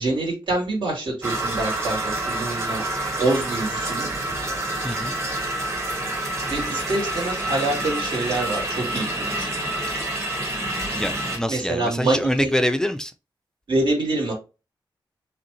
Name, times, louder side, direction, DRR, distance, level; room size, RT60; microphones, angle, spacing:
voice 1, 0.0-2.8 3.2-4.1 6.5-9.5 11.5-12.5 13.7-14.3, right 2 dB, 75° right, 2.8 m, -25 dB
sound 1, 1.2-11.4, right 1 dB, 30° right, 1.6 m, -27 dB
voice 2, 4.8-5.1 10.9-13.1, equal, 5° left, 0.4 m, -25 dB
5.2 x 3.4 x 3.0 m
wide cardioid pair, 130°, 8 cm